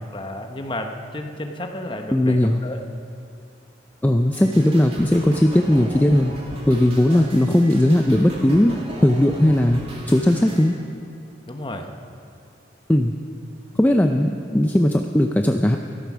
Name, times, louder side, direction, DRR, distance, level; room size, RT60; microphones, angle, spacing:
voice 1, 0.1-2.8 6.9-7.3 11.5-11.9, left 1 dB, 25° left, 4 dB, 1.0 m, -32 dB
voice 2, 2.1-2.6 4.0-6.3 6.7-9.8 10.1-10.8 12.9-13.2 13.8-15.8, left 1 dB, 10° left, 4 dB, 0.4 m, -18 dB
sound 1, 4.3-10.7, right 1 dB, 35° right, 2.4 m, -37 dB
14.0 x 13.0 x 6.1 m, 2.5 s
head